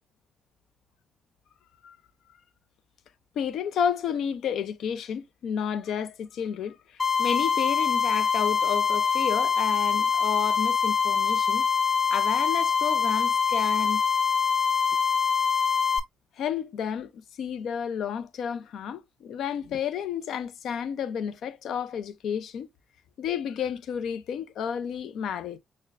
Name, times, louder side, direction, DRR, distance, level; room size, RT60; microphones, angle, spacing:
voice 1, 3.4-11.7 12.1-14.0 16.4-17.1 17.4-22.7 23.2-25.6, left 8 dB, 70° left, 0.5 m, -31 dB
sound 1, 7.0-16.0, left 6 dB, 25° left, 2.0 m, -24 dB
6.3 x 2.1 x 2.5 m
cardioid pair, 90°, 0 cm